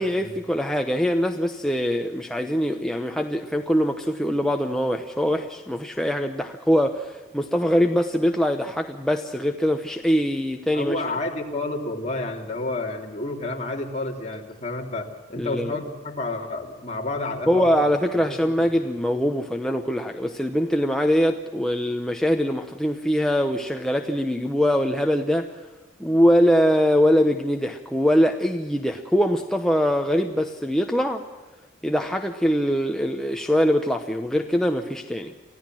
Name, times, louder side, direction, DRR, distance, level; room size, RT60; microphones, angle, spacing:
voice 1, 0.0-11.0 15.4-15.8 17.5-25.5 26.0-31.2 31.8-35.3, equal, 5° left, 3 dB, 0.9 m, -23 dB
voice 2, 10.7-17.7 18.2-18.4, left 2 dB, 35° left, 1 dB, 3.0 m, -30 dB
25.0 x 16.0 x 7.6 m, 1.3 s
head